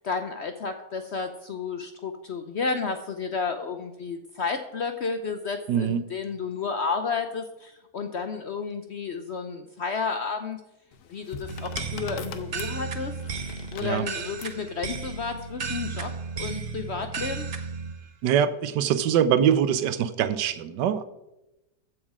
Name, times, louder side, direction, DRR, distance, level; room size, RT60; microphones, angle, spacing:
voice 1, 0.0-10.6 11.1-13.1 13.7-16.1 16.4-17.5, left 5 dB, 60° left, 7 dB, 0.7 m, -31 dB
voice 2, 5.7-6.1 13.8-14.1 18.2-21.0, right 9 dB, 85° right, 13 dB, 1.3 m, -23 dB
sound 1, 10.9-14.6 15.6-16.0, left 6 dB, 80° left, 1.5 m, -42 dB
sound 2, 11.5-17.9, right 5 dB, 45° right, 0.8 m, -34 dB
14.5 x 6.4 x 4.8 m, 0.94 s
omnidirectional pair, 1.8 m